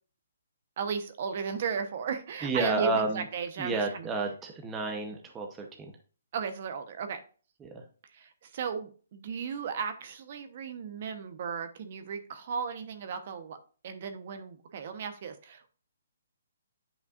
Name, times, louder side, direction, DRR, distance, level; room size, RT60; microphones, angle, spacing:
voice 1, 0.8-4.1 6.3-7.2 8.1-13.6 13.8-15.7, right 6 dB, 40° right, 9 dB, 0.9 m, -35 dB
voice 2, 2.4-3.2 3.6-5.9 7.6-7.8, right 3 dB, 10° right, 3 dB, 0.8 m, -31 dB
9.5 x 5.5 x 2.4 m, 0.38 s
hypercardioid pair, 165°, 0 cm